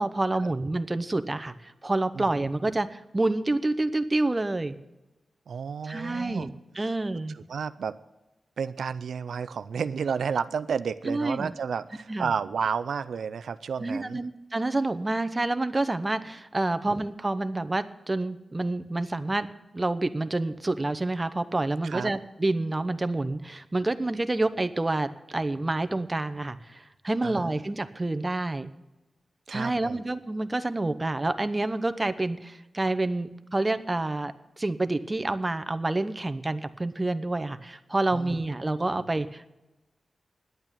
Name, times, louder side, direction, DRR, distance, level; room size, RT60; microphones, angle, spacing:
voice 1, 0.0-4.7 5.8-7.4 11.1-11.5 12.1-12.3 13.8-19.5 19.7-28.7 29.5-39.5, right 2 dB, 25° right, 11 dB, 0.9 m, -28 dB
voice 2, 2.2-2.5 5.5-6.5 6.8-6.9 7.5-7.9 8.6-14.3 21.8-22.1 27.2-27.5 29.5-30.0 38.1-38.4, right 6 dB, 90° right, 12 dB, 0.4 m, -31 dB
10.5 x 8.7 x 8.4 m, 1.0 s
cardioid pair, 75°, 0 cm